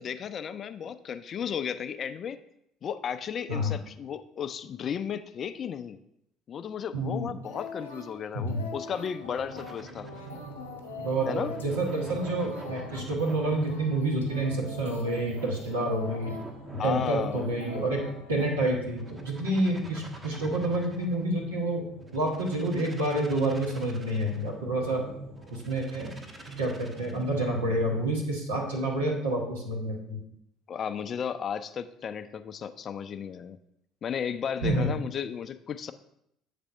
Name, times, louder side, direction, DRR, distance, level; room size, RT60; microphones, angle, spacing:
voice 1, 0.0-2.4 2.8-6.0 6.5-10.1 11.3-11.5 16.8-17.5 30.7-33.6 34.0-35.9, left 7 dB, 45° left, 11 dB, 0.4 m, -34 dB
voice 2, 6.9-7.3 8.3-8.6 11.0-16.4 16.7-18.0 18.3-21.9 22.1-25.0 25.5-26.1 26.6-30.2 34.6-34.9, right 1 dB, 85° right, -2 dB, 1.5 m, -28 dB
sound 1, 7.4-18.5, left 4 dB, 90° left, 0.8 m, -43 dB
sound 2, 9.2-28.0, right 2 dB, 65° right, 2.0 m, -46 dB
sound 3, 9.5-10.4 11.3-13.8 14.7-18.1 18.9-21.2 22.0-24.5 25.4-27.3, right 2 dB, 30° right, 1.2 m, -49 dB
8.3 x 3.4 x 5.3 m, 0.77 s
hypercardioid pair, 60°, 0 cm